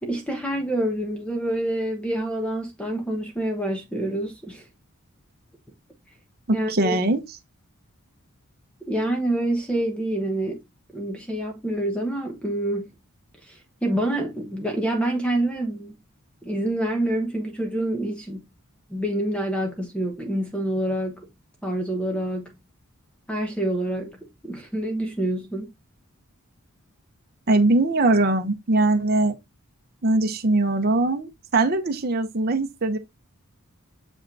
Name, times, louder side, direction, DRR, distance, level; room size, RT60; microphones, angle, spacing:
voice 1, 0.0-4.6 6.5-7.0 8.9-10.7 10.9-12.9 13.5-16.0 16.4-18.5 18.9-21.3 21.6-22.6 23.3-25.7, right 1 dB, 5° left, 1.0 m, -27 dB
voice 2, 6.7-7.2 27.5-29.3 30.0-33.0, right 2 dB, 45° right, 0.8 m, -21 dB
7.0 x 5.7 x 2.6 m
head